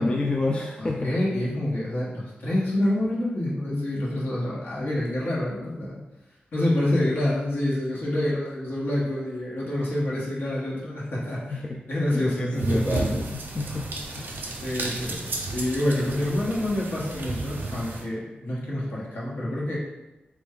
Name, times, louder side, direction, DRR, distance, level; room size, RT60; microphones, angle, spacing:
voice 1, 0.0-1.1 11.5-11.8 12.1-14.5, left 2 dB, 30° left, -1 dB, 0.3 m, -29 dB
voice 2, 0.8-6.0 6.5-11.4 11.9-12.9 14.6-19.8, left 1 dB, 70° left, -6 dB, 1.1 m, -27 dB
sound 1, 12.5-18.0, right 2 dB, 75° right, 0.6 m, -32 dB
3.2 x 2.4 x 3.6 m, 1.0 s
wide cardioid pair, 120°, 3 cm